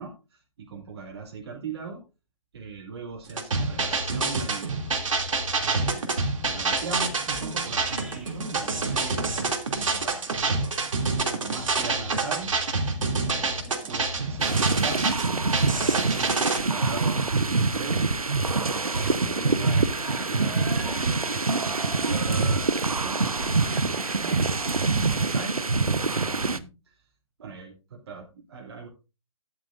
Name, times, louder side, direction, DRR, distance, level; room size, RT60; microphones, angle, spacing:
voice 1, 0.0-2.0 2.5-5.2 5.6-6.2 6.5-10.7 11.0-12.5 13.3-15.2 15.6-18.0 18.6-22.3 22.8-23.4 23.8-24.5 24.8-25.6 26.1-27.0 27.4-28.9, right 4 dB, 50° right, 0 dB, 2.7 m, -40 dB
sound 1, 3.3-16.6, right 3 dB, 65° right, 2.8 m, -27 dB
sound 2, 6.8-25.4, right 2 dB, 5° right, 2.1 m, -45 dB
sound 3, 14.4-26.6, right 3 dB, 85° right, 1.0 m, -25 dB
13.0 x 11.0 x 2.6 m, 0.29 s
figure-of-eight pair, 140°, 18 cm